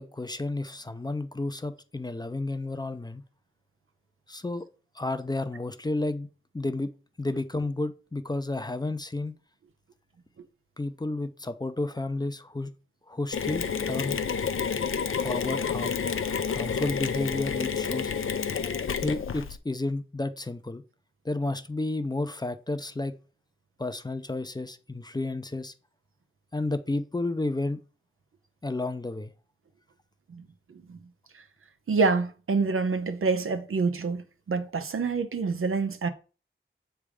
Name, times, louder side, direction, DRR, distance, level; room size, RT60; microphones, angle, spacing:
voice 1, 0.0-3.2 4.3-4.6 4.9-6.3 6.5-6.9 7.2-9.3 10.8-12.7 13.1-14.2 15.1-18.1 19.0-20.8 21.2-23.1 23.8-25.7 26.5-27.8 28.6-29.3, left 2 dB, 20° left, 0.5 m, -31 dB
Mechanisms, 13.3-19.6, left 6 dB, 75° left, 0.5 m, -29 dB
voice 2, 31.9-36.1, right 4 dB, 85° right, 0.7 m, -27 dB
7.2 x 3.4 x 4.9 m
wide cardioid pair, 75°, 21 cm